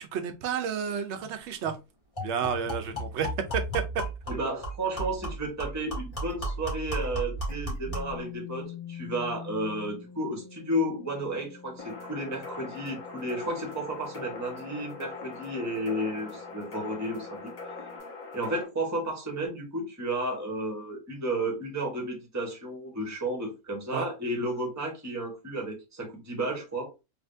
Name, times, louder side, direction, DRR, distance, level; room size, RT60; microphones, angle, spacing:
voice 1, 0.0-1.8 2.2-3.8 23.9-24.1, right 7 dB, 65° right, 0.8 m, -31 dB
sound 1, 1.2-1.3 1.6-1.8 2.2-8.2, right 1 dB, 25° left, 1.6 m, -34 dB
voice 2, 4.3-17.5 18.3-26.9, right 1 dB, 15° right, 0.9 m, -32 dB
sound 2, 7.9-18.0, left 8 dB, 85° left, 1.2 m, -47 dB
sound 3, 11.8-18.6, left 3 dB, 50° left, 1.0 m, -42 dB
3.4 x 2.7 x 2.6 m
omnidirectional pair, 1.4 m